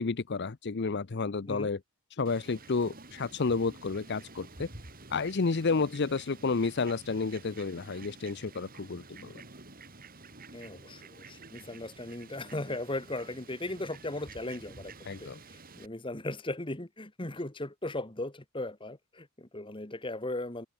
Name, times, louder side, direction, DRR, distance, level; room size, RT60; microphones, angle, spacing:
voice 1, 0.0-1.8 2.1-4.7 5.1-9.4 15.1-15.4, left 4 dB, 50° left, 0.6 m, -31 dB
Fowl, 2.2-15.9, right 3 dB, 40° right, 4.8 m, -50 dB
voice 2, 10.5-14.9 15.2-20.7, left 2 dB, 20° left, 1.7 m, -37 dB
head